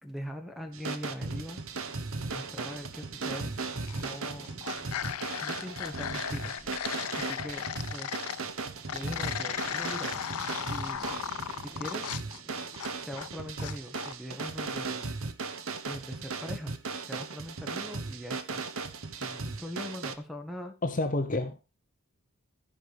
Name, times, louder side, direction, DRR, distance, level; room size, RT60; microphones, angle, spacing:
voice 1, 0.0-1.6 2.3-3.5 3.9-4.5 5.4-6.5 7.1-8.2 8.9-10.2 10.7-11.1 11.6-12.2 13.1-15.1 15.9-16.7 17.1-18.6 19.1-20.7, equal, ahead, 5 dB, 1.5 m, -41 dB
sound 1, 0.6-13.4, right 1 dB, 20° right, 2.4 m, -54 dB
sound 2, 0.7-20.1, right 4 dB, 65° right, 1.0 m, -37 dB
sound 3, 3.6-4.2 4.4-8.4 8.9-13.3 13.6-14.2, left 9 dB, 90° left, 0.6 m, -36 dB
voice 2, 20.8-21.6, left 2 dB, 35° left, 7 dB, 1.0 m, -29 dB
15.0 x 5.2 x 4.8 m, 0.30 s
head